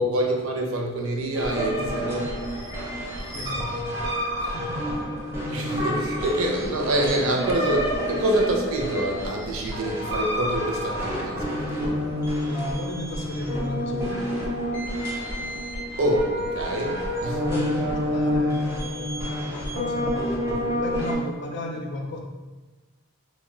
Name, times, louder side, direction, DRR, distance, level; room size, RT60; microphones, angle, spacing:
voice 1, 0.0-2.4 3.2-3.6 5.5-12.0 16.0-17.4, right 1 dB, 75° right, 1 dB, 0.5 m, -26 dB
sound 1, 1.3-21.1, equal, 10° right, 0.4 m, -28 dB
voice 2, 1.6-2.0 3.3-4.0 4.4-5.0 12.4-14.5 17.3-22.2, left 1 dB, 50° left, 1 dB, 0.4 m, -34 dB
2.3 x 2.1 x 3.7 m, 1.2 s
head